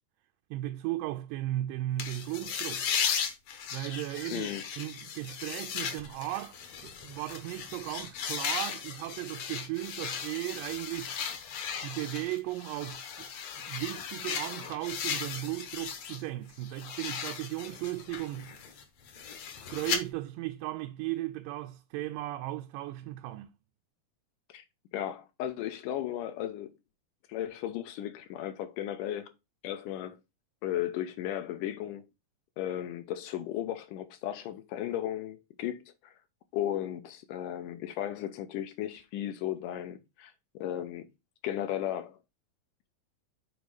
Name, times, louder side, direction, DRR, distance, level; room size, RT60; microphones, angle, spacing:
voice 1, 0.5-2.9 3.7-11.2 11.8-13.3 13.6-18.5 19.7-23.5, right 16 dB, 85° right, 2.2 m, -36 dB
sound 1, 2.0-16.2 16.5-20.0, left 7 dB, 65° left, 1.8 m, -36 dB
voice 2, 4.3-4.6 24.5-24.6 24.9-26.7 27.3-29.3 29.6-30.2 30.6-32.1 32.6-36.1 36.5-41.1 41.4-42.2, left 11 dB, 80° left, 2.3 m, -35 dB
6.5 x 4.1 x 4.7 m
omnidirectional pair, 3.9 m